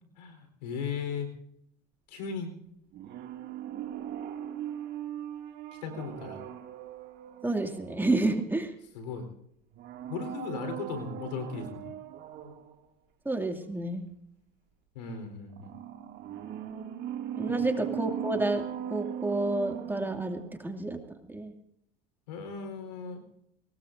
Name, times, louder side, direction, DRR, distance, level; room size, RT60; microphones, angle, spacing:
voice 1, 0.2-1.3 2.1-2.5 5.8-6.4 8.9-9.3 10.1-11.9 14.9-15.8 17.5-17.6 22.3-23.2, left 5 dB, 90° left, 7 dB, 4.1 m, -37 dB
sound 1, 2.9-8.7 9.7-12.7 15.5-20.7 21.0-21.1, right 11 dB, 55° right, 2.4 m, -39 dB
voice 2, 7.4-8.7 13.2-14.1 17.3-18.6 18.9-21.0 21.3-21.5, right 2 dB, 10° right, 4 dB, 2.5 m, -30 dB
23.5 x 19.5 x 2.6 m, 0.72 s
supercardioid pair, 85°, 21 cm